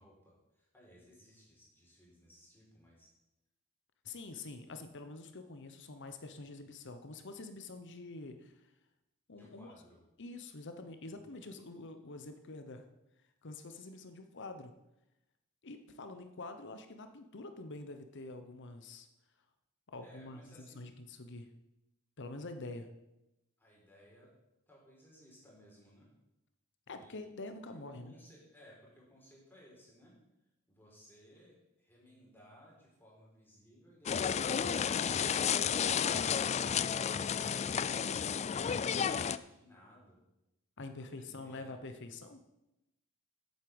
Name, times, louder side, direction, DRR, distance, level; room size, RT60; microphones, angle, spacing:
voice 1, 0.0-3.1 9.3-10.0 11.1-11.4 20.0-20.9 23.6-24.3 24.7-26.1 26.9-30.2 30.7-35.0 35.4-36.5 37.0-40.2 41.0-41.7, equal, 10° left, -4 dB, 4.3 m, -60 dB
voice 2, 4.0-8.5 9.3-9.7 10.2-12.9 13.4-14.7 15.6-19.1 19.9-21.5 22.2-22.9 26.9-28.2 40.8-42.4, left 2 dB, 55° left, 8 dB, 1.0 m, -46 dB
Walking bamboo mechanism unusual abstract sound, 34.1-39.4, left 7 dB, 30° left, 0.3 m, -32 dB
8.4 x 8.4 x 7.8 m, 0.92 s
head